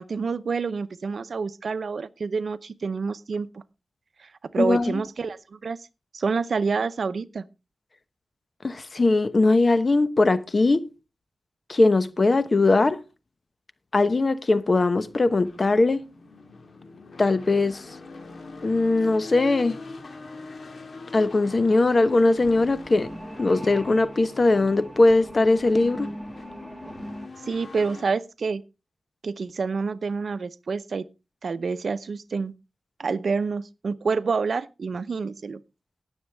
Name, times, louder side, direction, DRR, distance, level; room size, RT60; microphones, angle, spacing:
voice 1, 0.0-3.6 4.5-5.8 6.1-7.4 27.5-28.6 29.2-31.0 31.4-32.5 33.0-35.6, right 4 dB, 80° right, 0.6 m, -28 dB
voice 2, 4.6-5.0 8.6-10.8 11.7-13.0 13.9-16.0 17.2-17.8 18.6-19.8 21.1-23.1 23.4-26.1, left 2 dB, 50° left, 1.0 m, -20 dB
sound 1, 14.9-28.0, left 3 dB, 75° left, 2.0 m, -43 dB
sound 2, 21.7-27.3, equal, ahead, 2.0 m, -41 dB
19.0 x 7.2 x 3.4 m
cardioid pair, 50°, 0 cm